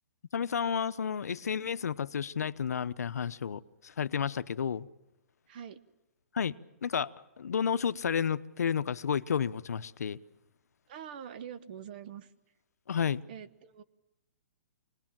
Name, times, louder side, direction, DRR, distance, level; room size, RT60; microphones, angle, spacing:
voice 1, 0.3-4.9 6.3-6.6 6.8-7.1 7.4-10.2 12.9-13.2, left 7 dB, 85° left, 14 dB, 0.9 m, -31 dB
voice 2, 5.5-5.8 10.9-12.3 13.3-13.8, right 8 dB, 35° right, 14 dB, 1.1 m, -44 dB
26.0 x 19.5 x 7.5 m, 0.95 s
hypercardioid pair, 170°, 8 cm